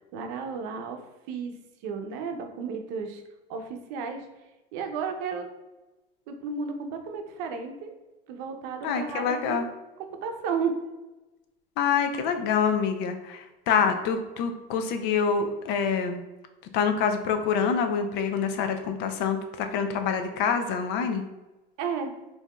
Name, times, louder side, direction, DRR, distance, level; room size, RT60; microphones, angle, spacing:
voice 1, 0.1-1.0 1.3-1.5 1.8-3.2 3.5-4.3 4.7-5.5 6.3-7.9 8.3-9.7 10.0-10.7 21.8-22.1, right 6 dB, 75° right, 5 dB, 0.6 m, -33 dB
voice 2, 8.8-9.7 11.8-16.2 16.7-21.3, left 6 dB, 60° left, 7 dB, 0.5 m, -26 dB
4.7 x 2.8 x 2.3 m, 1.1 s
cardioid pair, 140°, 19 cm